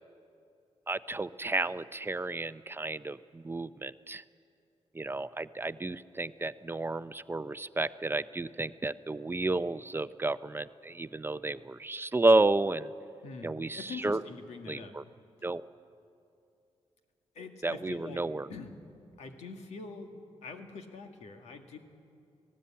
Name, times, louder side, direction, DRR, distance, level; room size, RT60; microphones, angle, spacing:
voice 1, 0.9-4.2 4.9-12.9 13.4-14.2 14.7-15.0 15.4-15.6 17.6-18.5, right 2 dB, 20° right, 14 dB, 0.5 m, -31 dB
voice 2, 13.2-15.0 17.4-18.2 18.5-18.8 19.2-21.8, left 4 dB, 85° left, 5 dB, 1.8 m, -44 dB
18.5 x 17.5 x 8.6 m, 2.6 s
cardioid pair, 85°, 11 cm